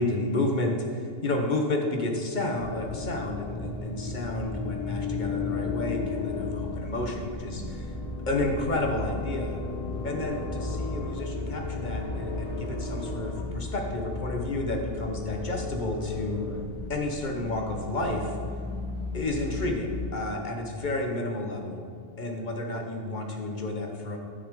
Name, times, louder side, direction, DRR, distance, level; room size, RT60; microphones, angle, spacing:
voice 1, 0.0-7.9 8.3-9.6 10.0-16.5 16.9-18.4 19.1-21.8 22.2-24.2, left 2 dB, 35° left, 2 dB, 1.2 m, -31 dB
sound 1, 2.2-16.6, left 4 dB, 55° left, 0.4 m, -36 dB
sound 2, 2.6-20.1, left 2 dB, 35° right, 3.0 m, -37 dB
14.0 x 6.2 x 3.8 m, 2.4 s
omnidirectional pair, 1.4 m